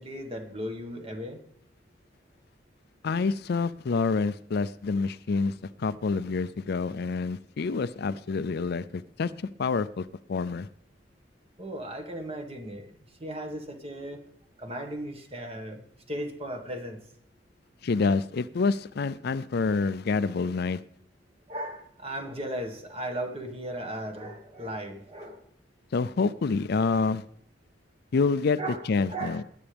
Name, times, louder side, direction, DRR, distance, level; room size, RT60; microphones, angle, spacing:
voice 1, 0.0-1.4 11.6-12.9 13.2-14.2 14.6-15.8 16.1-17.0 21.5-25.4 28.6-29.4, right 1 dB, 35° right, 1.7 m, -36 dB
voice 2, 3.0-9.3 9.6-10.7 17.8-20.8 25.9-27.2 28.1-28.6 28.9-29.4, left 4 dB, 60° left, 0.4 m, -27 dB
20.0 x 10.0 x 3.5 m
head